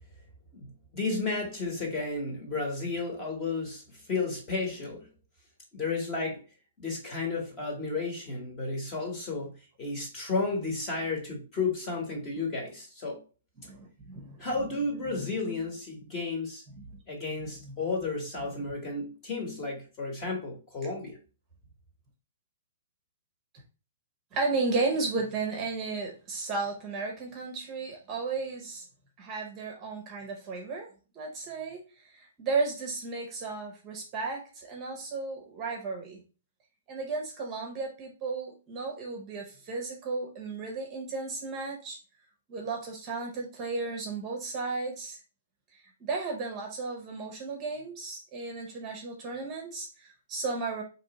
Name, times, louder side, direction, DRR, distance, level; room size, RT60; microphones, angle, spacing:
voice 1, 0.5-5.1 5.7-6.4 6.8-13.2 14.4-16.6 17.1-21.2, left 3 dB, 20° left, 1.3 m, -33 dB
voice 2, 13.6-14.5 15.1-15.3 16.8-17.0 17.6-17.7 18.6-18.7 24.3-28.9 29.2-30.9 31.1-36.2 36.9-42.0 42.5-45.2 45.7-50.8, right 3 dB, 20° right, 0.9 m, -34 dB
4.3 x 3.0 x 4.1 m
hypercardioid pair, 170°, 0 cm